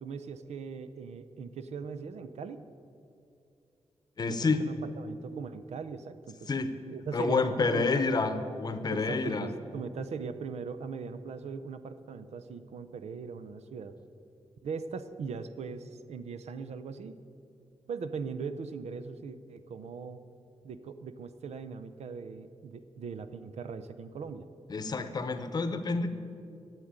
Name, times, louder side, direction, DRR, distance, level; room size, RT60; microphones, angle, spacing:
voice 1, 0.0-2.7 4.3-6.5 6.9-8.1 8.9-14.0 14.6-17.1 17.9-20.2 20.6-24.5, right 5 dB, 75° right, 11 dB, 0.7 m, -40 dB
voice 2, 4.2-4.7 6.5-6.7 7.1-9.5 24.7-26.1, left 4 dB, 35° left, 9 dB, 0.8 m, -28 dB
12.5 x 8.2 x 8.9 m, 2.6 s
wide cardioid pair, 160°, 11 cm